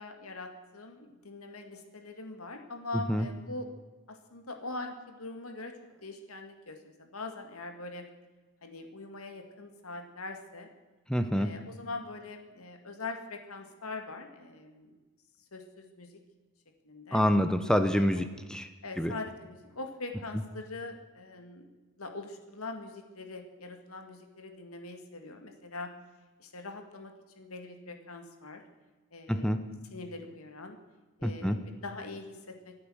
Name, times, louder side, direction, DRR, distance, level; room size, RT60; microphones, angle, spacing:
voice 1, 0.0-3.7 4.1-5.7 6.0-8.0 8.6-10.7 11.3-14.9 15.5-16.1 16.8-17.3 17.9-18.3 18.8-21.6 22.0-25.9 26.4-28.6 29.1-29.6 29.9-30.8 31.2-32.7, left 3 dB, 80° left, 5 dB, 2.0 m, -42 dB
voice 2, 11.1-11.5 17.1-18.7 19.0-19.1 29.3-29.6 31.2-31.6, equal, 5° left, 9 dB, 0.7 m, -26 dB
24.5 x 8.6 x 6.3 m, 1.2 s
head